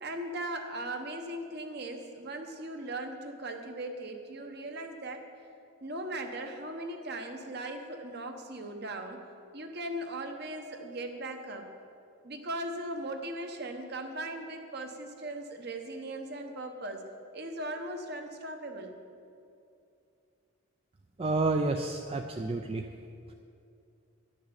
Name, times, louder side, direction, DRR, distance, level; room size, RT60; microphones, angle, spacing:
voice 1, 0.0-5.2 5.8-9.2 9.5-11.7 12.2-17.1 17.3-19.0, right 1 dB, 50° right, 4 dB, 1.1 m, -38 dB
voice 2, 21.2-22.9, right 3 dB, 25° right, 4 dB, 0.4 m, -29 dB
11.5 x 6.6 x 8.8 m, 2.6 s
head